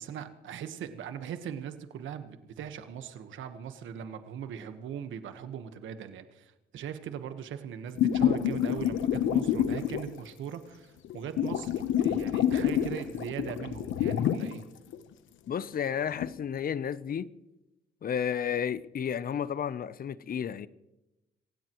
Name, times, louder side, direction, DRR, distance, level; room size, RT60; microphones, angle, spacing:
voice 1, 0.0-11.7 12.0-14.6, right 8 dB, 75° right, 1.3 m, -40 dB
sound 1, 8.0-10.2 11.0-14.5 14.9-15.0 16.1-16.3, left 10 dB, 80° left, 1.0 m, -27 dB
voice 2, 15.5-17.3 18.0-20.7, left 8 dB, 45° left, 0.7 m, -32 dB
26.0 x 16.5 x 3.1 m
cardioid pair, 90°, 20 cm